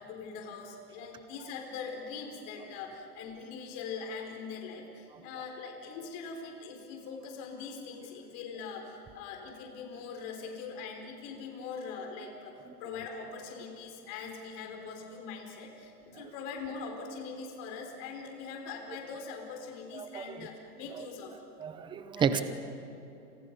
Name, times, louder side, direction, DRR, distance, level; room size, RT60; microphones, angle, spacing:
voice 1, 0.0-21.3 22.2-22.4, left 5 dB, 35° left, 3 dB, 4.7 m, -42 dB
voice 2, 19.9-20.5 20.9-21.1 21.6-22.4, right 7 dB, 10° right, 11 dB, 0.8 m, -32 dB
29.0 x 26.5 x 5.5 m, 2.9 s
hypercardioid pair, 145°, 47 cm